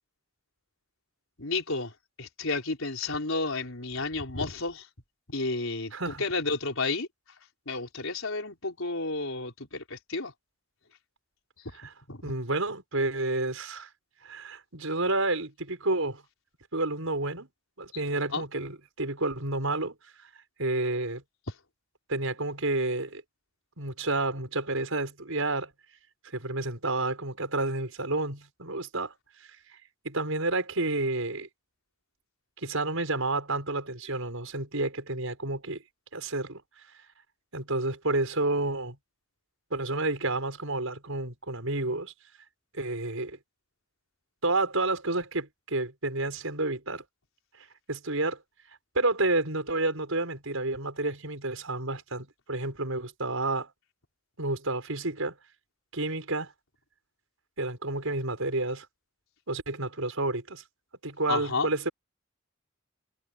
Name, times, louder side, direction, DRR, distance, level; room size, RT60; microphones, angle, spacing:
voice 1, 1.4-1.9 2.2-4.8 5.3-5.9 6.2-7.1 7.7-10.3 12.1-12.2 18.3-18.4 61.3-61.7, left 3 dB, 80° left, 4.2 m, -31 dB
voice 2, 5.9-6.2 11.7-11.9 12.2-13.9 14.2-16.2 16.7-17.5 17.8-19.9 20.6-21.2 22.1-23.2 23.8-25.7 26.3-29.1 30.0-31.5 32.6-35.8 36.1-36.6 37.5-39.0 39.7-42.1 42.7-43.4 44.4-47.0 47.9-48.4 48.9-53.7 54.4-55.4 55.9-56.5 57.6-58.9 59.5-60.6 61.0-61.9, right 2 dB, 85° right, 5.8 m, -30 dB
head